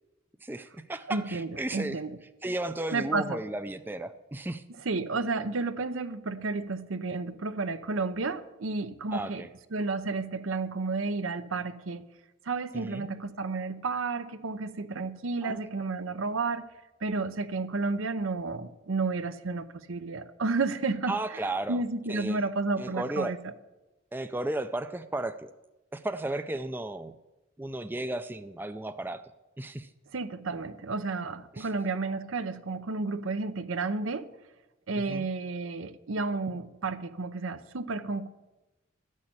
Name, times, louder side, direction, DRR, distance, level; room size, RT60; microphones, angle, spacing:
voice 1, 0.4-2.0 2.4-4.6 9.1-9.5 12.7-13.1 15.4-15.6 21.1-21.8 22.1-22.5 22.8-23.3 24.1-25.5 25.9-27.1 27.6-29.2 29.6-29.9 31.5-31.7 35.0-35.3, right 1 dB, 10° right, 10 dB, 0.3 m, -34 dB
voice 2, 1.1-2.1 2.9-3.4 4.9-9.4 9.7-12.0 12.5-16.6 17.0-21.2 21.7-23.5 30.1-34.3 34.9-38.3, right 3 dB, 80° right, 12 dB, 0.7 m, -31 dB
13.0 x 6.5 x 8.7 m, 1.1 s
head